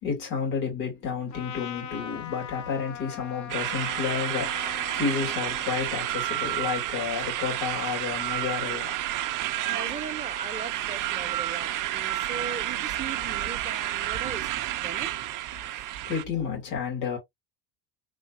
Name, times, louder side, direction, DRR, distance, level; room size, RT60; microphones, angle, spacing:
voice 1, 0.0-9.0 15.7-17.2, left 6 dB, 90° left, 2.5 m, -31 dB
Trumpet, 1.3-6.2, left 8 dB, 40° left, 0.7 m, -40 dB
sound 1, 3.5-16.2, right 14 dB, 45° right, 0.5 m, -30 dB
voice 2, 9.7-15.3, right 4 dB, 15° right, 0.8 m, -39 dB
3.7 x 2.7 x 2.5 m
supercardioid pair, 90°, 47 cm